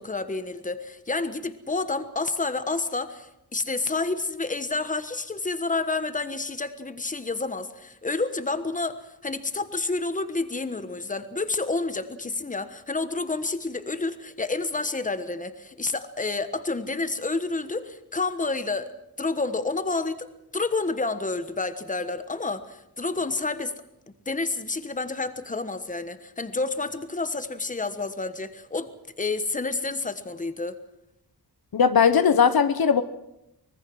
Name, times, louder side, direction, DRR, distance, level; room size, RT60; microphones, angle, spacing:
voice 1, 0.0-18.9 19.2-20.3 20.5-23.7 24.1-28.9 29.2-30.8, left 3 dB, 20° left, 11 dB, 1.3 m, -29 dB
voice 2, 31.7-33.0, left 6 dB, 65° left, 12 dB, 1.0 m, -19 dB
24.5 x 20.0 x 6.3 m, 0.87 s
wide cardioid pair, 130°, 38 cm